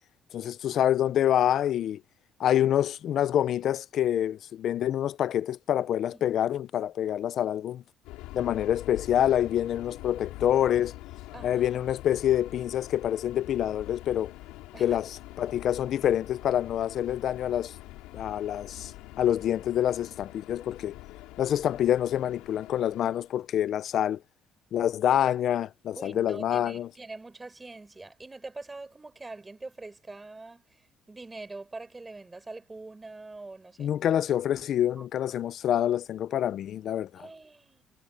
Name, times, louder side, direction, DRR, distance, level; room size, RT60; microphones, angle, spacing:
voice 1, 0.3-2.0 2.4-7.8 8.3-10.9 11.4-14.3 14.8-15.1 15.4-17.7 18.1-18.9 19.2-20.9 21.4-24.2 24.7-26.9 33.8-37.3, left 11 dB, 60° left, 0.7 m, -26 dB
Subway metro underground, 8.0-23.4, left 18 dB, 90° left, 3.9 m, -45 dB
voice 2, 11.3-11.7 14.7-15.0 26.0-33.9 35.0-35.1 37.1-37.8, right 3 dB, 15° right, 4.8 m, -44 dB
cardioid pair, 105°, 0 cm